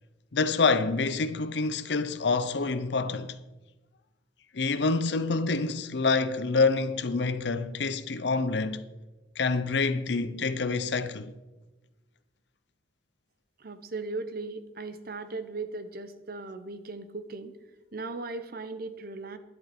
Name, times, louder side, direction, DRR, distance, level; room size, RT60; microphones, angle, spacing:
voice 1, 0.3-3.4 4.5-8.8 9.4-11.3, left 4 dB, 65° left, 0.7 m, -27 dB
voice 2, 13.6-17.6 17.9-19.4, right 3 dB, 55° right, 0.9 m, -37 dB
11.5 x 11.0 x 4.4 m
head